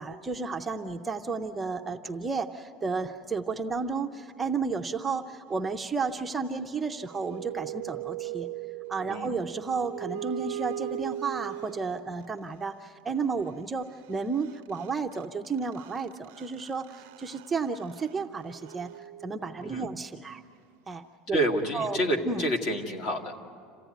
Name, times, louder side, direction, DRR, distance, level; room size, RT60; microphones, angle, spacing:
voice 1, 0.0-8.5 8.9-18.9 19.2-20.4 20.9-21.4 21.7-22.0 22.2-22.4, right 4 dB, 10° right, 4 dB, 0.5 m, -32 dB
sound 1, 6.9-12.2 14.1-14.2 14.4-19.9, right 13 dB, 85° right, 0.5 m, -40 dB
voice 2, 21.3-23.3, equal, 45° left, 5 dB, 2.0 m, -29 dB
27.5 x 15.5 x 9.1 m, 2.3 s
cardioid pair, 175°, 0 cm